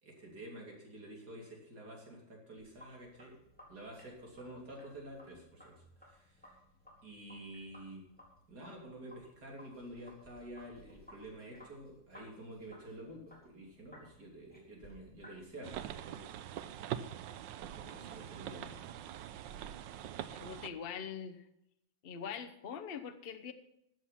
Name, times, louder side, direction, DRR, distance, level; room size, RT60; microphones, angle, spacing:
voice 1, 0.0-3.4 3.7-6.5 7.0-8.1 8.5-16.2 17.7-18.8, right 1 dB, 60° right, -1 dB, 3.6 m, -49 dB
Sink (filling or washing), 2.6-15.4, left 1 dB, 5° left, 3.8 m, -60 dB
sound 1, 15.6-20.7, right 10 dB, 85° right, 1.4 m, -43 dB
voice 2, 20.3-21.5 22.0-23.5, left 7 dB, 40° left, 8 dB, 0.9 m, -43 dB
13.5 x 7.9 x 5.8 m, 0.81 s
omnidirectional pair, 2.0 m